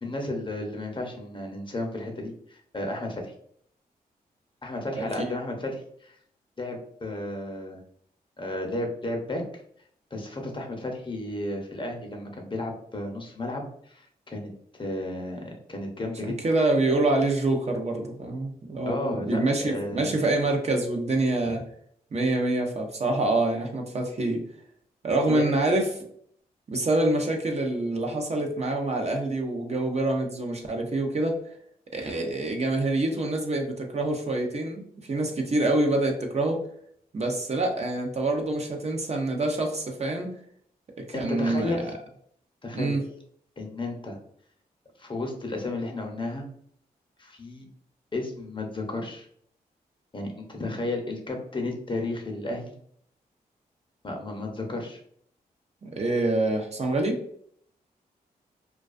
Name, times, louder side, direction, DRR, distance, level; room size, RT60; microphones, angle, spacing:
voice 1, 0.0-3.3 4.6-6.2 6.6-7.8 8.4-9.4 10.1-14.5 14.8-16.4 18.9-20.1 25.3-25.4 41.1-41.9 42.6-43.0 43.6-44.2 45.0-46.4 47.2-47.6 48.1-49.3 50.1-52.7 54.0-55.0, left 2 dB, 30° left, 1 dB, 0.7 m, -33 dB
voice 2, 16.2-21.6 22.1-24.4 25.0-25.9 26.7-31.3 31.9-34.8 35.1-36.6 37.1-40.3 41.1-41.8 42.7-43.0 55.8-57.2, right 2 dB, 40° right, 2 dB, 0.6 m, -26 dB
2.3 x 2.3 x 2.4 m, 0.64 s
cardioid pair, 55°, 16 cm